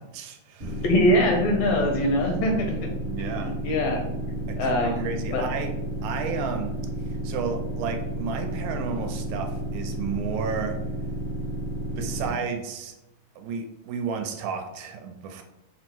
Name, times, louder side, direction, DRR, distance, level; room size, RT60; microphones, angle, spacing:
voice 1, 0.1-0.8 3.1-3.6 4.5-5.7 6.0-6.8 7.2-10.8 12.0-12.9 13.4-15.4, right 6 dB, 80° right, 5 dB, 1.9 m, -32 dB
sound 1, 0.6-12.3, right 1 dB, 45° right, 0.8 m, -32 dB
voice 2, 0.8-2.7 3.2-5.1 5.3-5.4, left 1 dB, 75° left, 1 dB, 1.7 m, -23 dB
5.6 x 2.1 x 4.4 m, 0.92 s
omnidirectional pair, 3.4 m